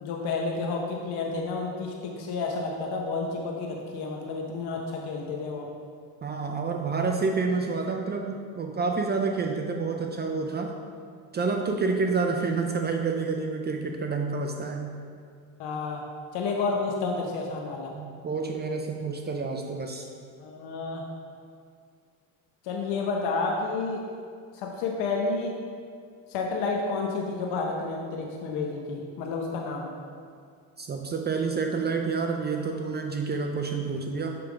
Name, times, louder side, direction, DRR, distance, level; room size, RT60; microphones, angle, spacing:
voice 1, 0.0-5.7 15.6-16.0 16.3-17.9 20.4-21.1 22.6-24.0 24.5-25.5 26.3-29.9, left 3 dB, 70° left, 0 dB, 0.8 m, -30 dB
voice 2, 6.2-10.7 11.3-14.9 18.0-20.1 30.8-34.4, right 4 dB, 25° right, 3 dB, 0.4 m, -28 dB
6.8 x 3.4 x 4.9 m, 2.2 s
supercardioid pair, 100°, 41 cm